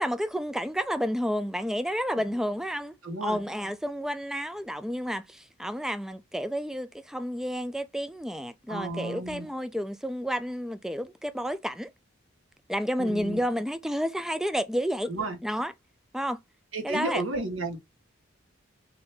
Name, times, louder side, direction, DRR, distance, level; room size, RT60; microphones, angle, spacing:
voice 1, 0.0-2.9 3.2-11.9 12.7-15.1 15.4-15.7 16.1-16.4 16.8-17.2, equal, ahead, 0.3 m, -30 dB
voice 2, 3.0-3.4 8.7-9.5 13.0-13.4 15.1-15.4 16.7-17.8, right 2 dB, 75° right, 1.5 m, -32 dB
4.0 x 2.8 x 3.4 m
head